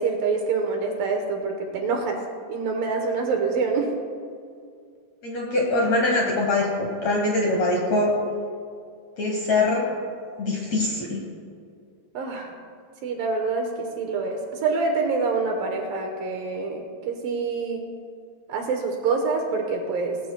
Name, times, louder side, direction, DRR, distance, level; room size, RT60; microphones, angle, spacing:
voice 1, 0.0-2.2 2.5-3.9 12.1-12.5 13.0-17.8 18.5-20.2, right 4 dB, 70° right, 3 dB, 2.5 m, -26 dB
voice 2, 5.2-8.1 9.2-9.9 10.4-11.2, left 2 dB, 65° left, -1 dB, 1.8 m, -23 dB
19.0 x 14.0 x 2.2 m, 2.2 s
omnidirectional pair, 4.6 m